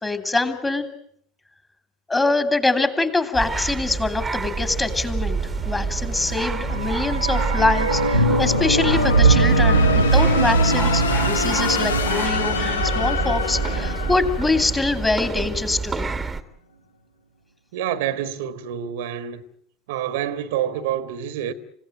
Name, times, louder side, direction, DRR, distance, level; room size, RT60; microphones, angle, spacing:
voice 1, 0.0-0.9 2.1-5.4 5.6-16.1, left 3 dB, 15° left, 3.1 m, -24 dB
sound 1, 3.3-16.4, right 4 dB, 15° right, 1.6 m, -28 dB
sound 2, 4.5-15.3, left 5 dB, 75° left, 1.1 m, -27 dB
sound 3, 6.4-14.6 14.8-14.9, right 4 dB, 85° right, 1.2 m, -22 dB
voice 2, 17.7-19.4 19.9-21.5, right 10 dB, 60° right, 1.5 m, -27 dB
28.5 x 16.5 x 9.0 m
figure-of-eight pair, 75°, 0 cm